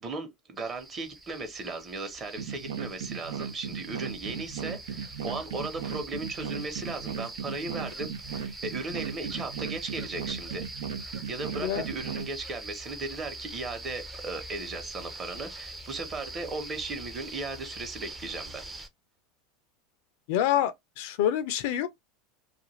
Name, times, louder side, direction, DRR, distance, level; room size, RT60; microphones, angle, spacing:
voice 1, 0.0-10.6 11.0-18.6, right 3 dB, 30° right, 0.9 m, -37 dB
sound 1, 0.6-18.9, right 2 dB, 10° right, 0.5 m, -43 dB
sound 2, 2.4-12.3, right 7 dB, 80° right, 0.6 m, -37 dB
voice 2, 20.3-21.9, left 10 dB, 70° left, 0.5 m, -27 dB
2.5 x 2.3 x 3.0 m
supercardioid pair, 115°, 0 cm